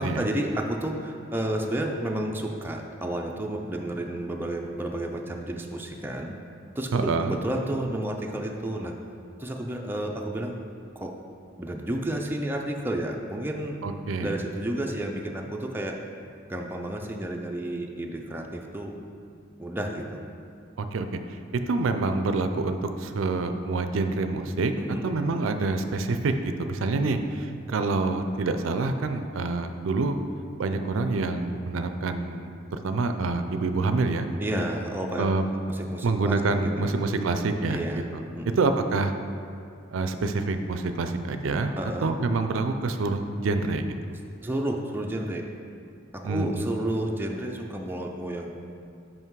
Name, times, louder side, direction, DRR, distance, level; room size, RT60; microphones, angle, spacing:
voice 1, 0.0-6.3 6.8-8.9 9.4-10.6 11.0-11.2 11.6-13.8 14.2-16.0 16.5-19.0 19.6-20.2 24.8-25.1 27.0-27.3 34.4-35.3 35.7-36.9 37.7-38.0 38.4-38.6 41.8-42.1 44.4-45.4 46.1-48.5, right 1 dB, 10° right, 1 dB, 0.4 m, -31 dB
voice 2, 6.9-7.4 13.8-14.3 20.8-21.1 21.7-24.7 25.0-27.2 27.7-30.2 30.6-32.5 32.8-34.3 35.2-35.5 36.0-37.8 38.1-38.2 38.6-39.1 39.9-41.7 42.0-43.9 46.2-46.7, right 3 dB, 80° right, 8 dB, 0.4 m, -26 dB
5.7 x 5.4 x 4.6 m, 2.4 s
head